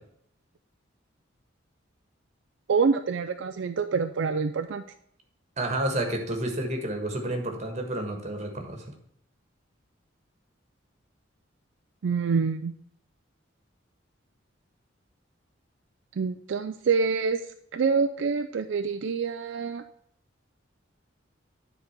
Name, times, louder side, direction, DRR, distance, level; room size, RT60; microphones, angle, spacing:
voice 1, 2.7-4.8 12.0-12.7 16.2-17.4 17.7-19.8, right 5 dB, 70° right, 8 dB, 0.4 m, -26 dB
voice 2, 5.6-8.9, right 1 dB, 35° right, 3 dB, 1.5 m, -30 dB
9.6 x 4.0 x 5.9 m, 0.69 s
head